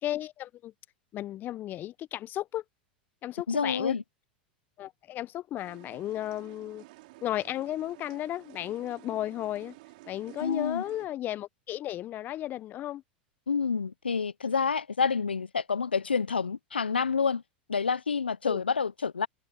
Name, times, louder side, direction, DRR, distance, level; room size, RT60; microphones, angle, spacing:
voice 1, 0.0-0.7 1.1-2.6 3.2-4.0 4.8-6.8 7.2-9.8 10.0-13.0 18.4-18.6, left 13 dB, 35° left, 0.9 m, -34 dB
voice 2, 3.5-4.0 10.4-10.8 13.5-17.4 17.7-19.3, left 5 dB, 85° left, 0.8 m, -28 dB
sound 1, 5.6-11.1, right 22 dB, 55° right, 6.4 m, -52 dB
figure-of-eight pair, 90°, 5 cm